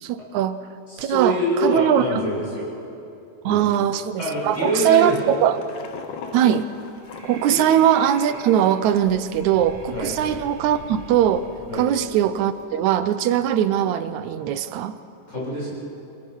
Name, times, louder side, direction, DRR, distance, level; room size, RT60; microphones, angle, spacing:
voice 1, 0.0-0.6 1.0-2.2 3.5-5.6 6.3-6.7 7.2-11.5 11.7-15.0, right 10 dB, 80° right, 12 dB, 2.0 m, -21 dB
voice 2, 0.9-2.7 3.4-3.6 4.2-5.3 7.4-7.6 9.9-10.1 11.7-11.8 15.3-15.7, equal, 20° left, -6 dB, 7.4 m, -25 dB
sound 1, 4.4-8.2 8.6-8.7 9.0-9.4, left 6 dB, 70° left, 2.3 m, -39 dB
Breathing, 6.7-12.6, right 2 dB, 55° right, 3.7 m, -44 dB
27.0 x 18.0 x 5.5 m, 2.7 s
omnidirectional pair, 3.4 m